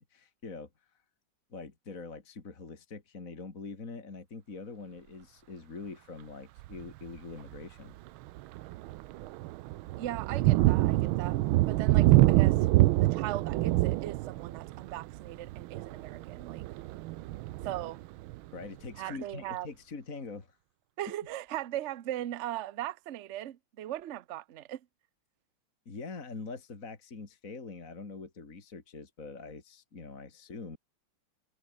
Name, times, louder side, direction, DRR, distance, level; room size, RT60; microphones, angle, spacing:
voice 1, 0.1-1.0 1.5-8.0 18.5-20.6 25.9-30.8, left 4 dB, 40° left, 3.1 m, -44 dB
Thunder, 6.6-6.9 7.5-7.6 8.1-18.6, right 17 dB, 80° right, 1.4 m, -26 dB
voice 2, 10.0-11.4 11.7-12.6 13.0-16.7 17.6-18.0 19.0-19.7 21.0-24.8, right 13 dB, 60° right, 0.7 m, -38 dB
omnidirectional pair, 2.3 m